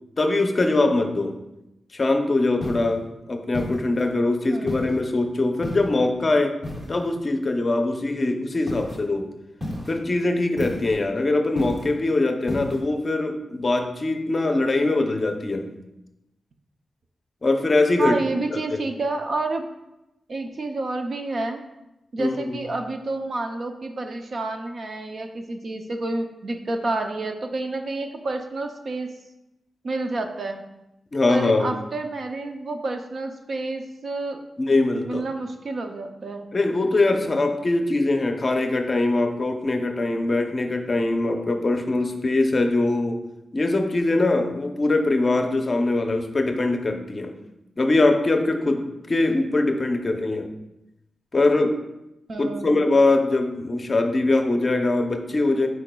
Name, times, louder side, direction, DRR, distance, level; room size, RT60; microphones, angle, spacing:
voice 1, 0.2-1.3 1.9-6.6 6.9-9.3 9.9-15.7 17.4-18.2 18.5-18.8 22.2-22.6 31.1-31.7 34.6-35.2 36.5-43.2 43.5-47.3 47.8-50.5 51.3-51.8 52.4-55.7, left 2 dB, 30° left, 4 dB, 0.6 m, -22 dB
sound 1, 2.6-3.0 3.5-4.1 4.7-5.0 5.6-6.0 6.6-7.1 8.7-9.0 9.6-10.0 10.6-11.0 11.5-12.0 12.5-12.8, left 1 dB, 20° right, 1.6 m, -33 dB
voice 2, 4.5-4.8 18.0-19.6 20.3-21.6 22.1-29.1 29.8-30.6 31.3-34.4 35.0-36.5 52.3-52.8, right 2 dB, 45° right, 5 dB, 0.5 m, -29 dB
8.9 x 4.8 x 2.3 m, 0.91 s
wide cardioid pair, 175°, 0 cm